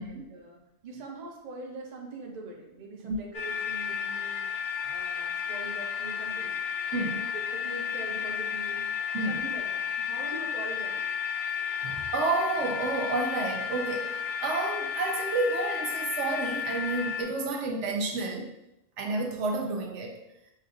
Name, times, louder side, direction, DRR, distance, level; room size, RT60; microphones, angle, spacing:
voice 1, 0.0-4.5 4.9-6.6 6.9-8.8 9.3-11.1, right 2 dB, 45° right, -1 dB, 0.7 m, -42 dB
sound 1, 3.3-17.2, left 7 dB, 70° left, 1.0 m, -32 dB
voice 2, 9.1-9.5 11.8-18.6 19.0-20.2, right 3 dB, 80° right, 2 dB, 0.9 m, -30 dB
5.4 x 2.4 x 2.5 m, 0.84 s
omnidirectional pair, 1.2 m